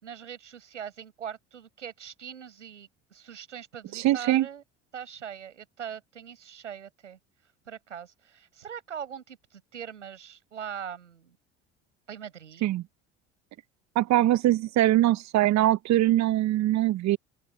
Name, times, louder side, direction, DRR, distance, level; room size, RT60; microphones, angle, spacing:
voice 1, 0.0-4.6 4.9-7.2 7.7-11.4 12.1-12.7, right 8 dB, 90° right, 6.8 m, -41 dB
voice 2, 3.9-4.5 12.6-12.8 13.9-17.2, right 14 dB, 50° right, 1.1 m, -22 dB
open air
hypercardioid pair, 65°, 35 cm